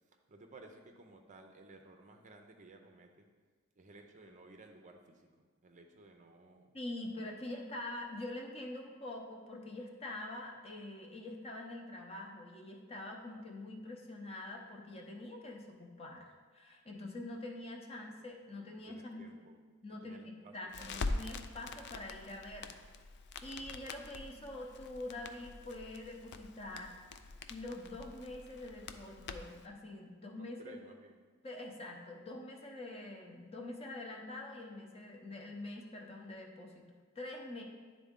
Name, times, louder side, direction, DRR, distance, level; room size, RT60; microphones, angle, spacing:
voice 1, 0.3-3.3 3.8-5.3 5.6-6.7 18.9-19.6 20.0-21.1 30.4-31.2, right 2 dB, 35° right, 4 dB, 0.5 m, -56 dB
voice 2, 6.7-19.4 19.8-20.2 20.5-22.7 23.4-27.0 27.5-30.8 31.4-36.9 37.1-37.6, left 2 dB, 30° left, 1 dB, 0.8 m, -45 dB
Crackle, 20.7-29.7, left 3 dB, 55° left, 0.4 m, -44 dB
10.0 x 4.0 x 3.7 m, 1.5 s
head